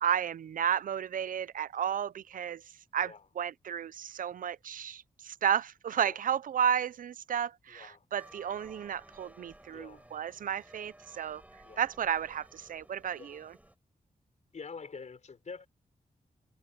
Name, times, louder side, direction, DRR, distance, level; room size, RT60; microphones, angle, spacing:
voice 1, 0.0-2.6 2.9-11.4 11.8-13.6, right 8 dB, 75° right, 0.5 m, -32 dB
voice 2, 7.7-8.0 9.7-10.1 11.6-11.8 13.1-13.4 14.5-15.7, left 5 dB, 55° left, 4.6 m, -46 dB
sound 1, 8.1-13.7, right 1 dB, 10° right, 6.6 m, -56 dB
cardioid pair, 85°, 14 cm